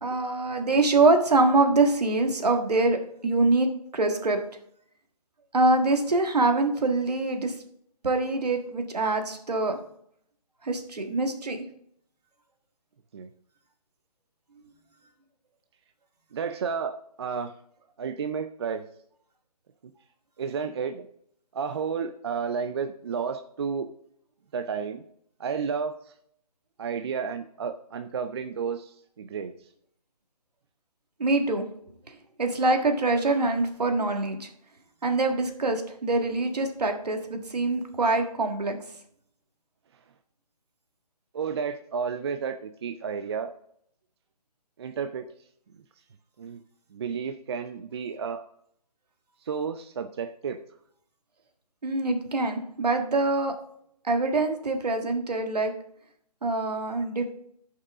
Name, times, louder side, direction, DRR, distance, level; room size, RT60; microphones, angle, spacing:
voice 1, 0.0-3.0 3.2-3.7 3.9-4.4 5.5-7.5 8.0-9.8 10.6-11.6 31.2-31.6 32.4-34.5 35.0-38.8 51.8-53.5 54.0-55.7 56.4-57.3, right 2 dB, 75° right, 5 dB, 1.7 m, -24 dB
voice 2, 16.3-17.5 18.0-18.9 20.4-21.1 21.5-23.9 24.5-25.0 25.4-25.9 26.8-29.5 41.3-43.5 44.8-45.3 46.4-46.6 46.9-48.4 49.5-50.6, right 6 dB, 40° right, 9 dB, 0.5 m, -31 dB
13.5 x 5.6 x 3.6 m, 0.69 s
figure-of-eight pair, 150°, 21 cm